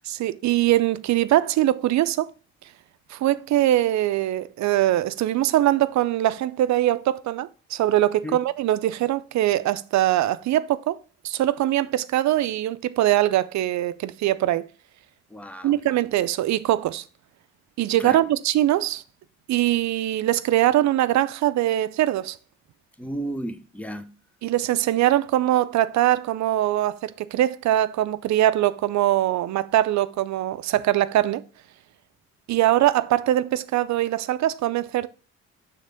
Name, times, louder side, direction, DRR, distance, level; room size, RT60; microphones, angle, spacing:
voice 1, 0.1-2.3 3.1-11.0 11.2-14.7 15.6-17.0 17.8-19.0 19.5-22.4 24.4-31.4 32.5-35.1, right 14 dB, 65° right, 0.5 m, -22 dB
voice 2, 15.3-15.8 18.0-18.2 23.0-24.1, right 1 dB, 5° left, 0.6 m, -33 dB
6.6 x 3.6 x 5.0 m
cardioid pair, 90°, 30 cm